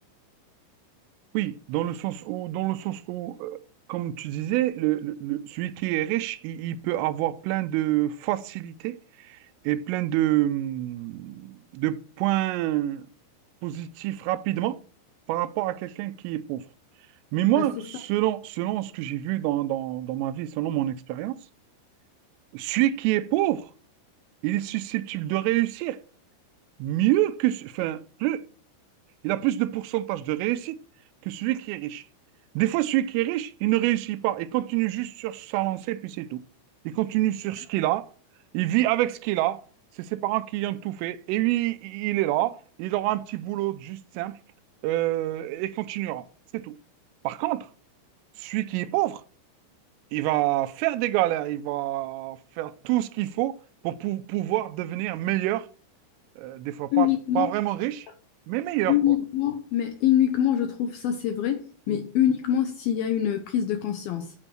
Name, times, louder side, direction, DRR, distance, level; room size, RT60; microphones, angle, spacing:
voice 1, 1.3-3.6 3.9-9.4 9.6-13.1 13.6-14.8 15.3-16.6 17.3-21.4 22.5-23.7 24.4-26.0 26.8-28.4 29.2-30.8 31.2-32.0 32.6-36.4 36.8-38.1 38.5-39.6 40.0-44.4 44.8-46.3 46.5-46.8 47.2-47.7 48.4-49.2 50.1-53.6 53.8-55.7 56.4-57.1 57.4-58.1 58.5-59.1 61.9-62.0, right 15 dB, 85° right, 3.3 m, -27 dB
voice 2, 56.9-57.5 58.9-64.3, left 11 dB, 80° left, 2.1 m, -24 dB
9.0 x 8.8 x 6.2 m
omnidirectional pair, 5.7 m